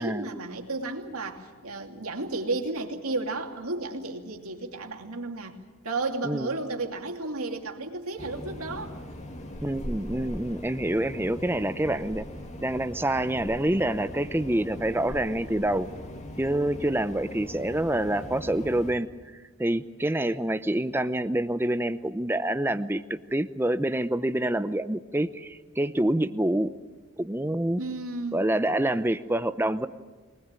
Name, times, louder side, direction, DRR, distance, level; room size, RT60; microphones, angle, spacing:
voice 1, 0.0-5.6 5.8-9.0 27.8-28.5, right 3 dB, 90° right, 3 dB, 2.7 m, -33 dB
sound 1, 8.2-18.9, left 1 dB, 30° left, 2.1 m, -40 dB
voice 2, 9.6-12.2 12.6-15.9 16.4-19.1 19.6-26.7 27.2-27.8 28.3-29.9, right 1 dB, 10° right, 11 dB, 0.7 m, -27 dB
23.5 x 19.5 x 9.0 m, 1.4 s
head